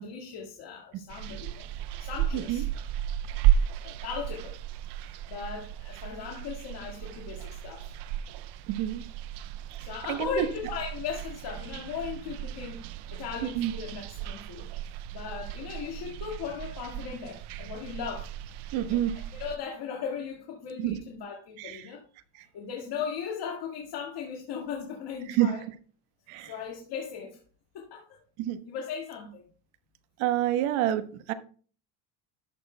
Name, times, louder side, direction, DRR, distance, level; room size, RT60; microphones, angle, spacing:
voice 1, 0.0-1.7 2.0-2.7 3.8-4.6 5.1-7.9 9.8-12.9 13.1-14.7 15.1-18.3 18.8-19.0 19.3-22.0 22.5-25.6 26.4-27.4 27.7-28.2 28.7-29.4, left 6 dB, 50° left, 1.9 m, -37 dB
sound 1, 1.1-19.6, right 11 dB, 55° right, 0.5 m, -34 dB
voice 2, 8.7-9.0 10.1-10.5 13.5-13.7 18.7-19.1 20.8-21.0 21.6-21.9 22.4-22.5 25.3-25.5 26.3-26.5 28.4-28.6 30.2-31.3, right 12 dB, 75° right, 1.3 m, -28 dB
12.5 x 9.0 x 2.2 m
cardioid pair, 125°, 49 cm